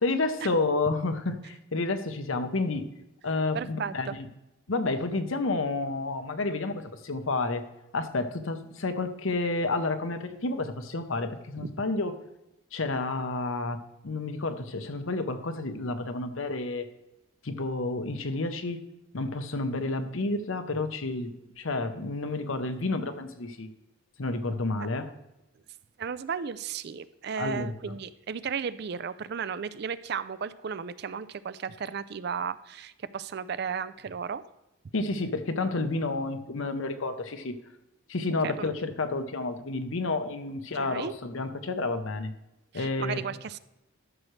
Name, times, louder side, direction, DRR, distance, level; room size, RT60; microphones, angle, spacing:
voice 1, 0.0-2.8 3.2-4.3 4.7-7.6 7.9-12.1 12.7-13.8 14.0-16.9 17.4-18.8 19.1-23.7 24.2-25.1 27.4-27.7 34.9-37.6 38.1-42.3 42.7-43.2, left 3 dB, 75° left, 9 dB, 0.8 m, -30 dB
voice 2, 3.5-4.2 11.6-11.7 26.0-34.4 38.4-38.7 40.8-41.1 42.7-43.6, right 6 dB, 50° right, 15 dB, 0.3 m, -34 dB
12.5 x 6.2 x 3.2 m, 0.91 s
head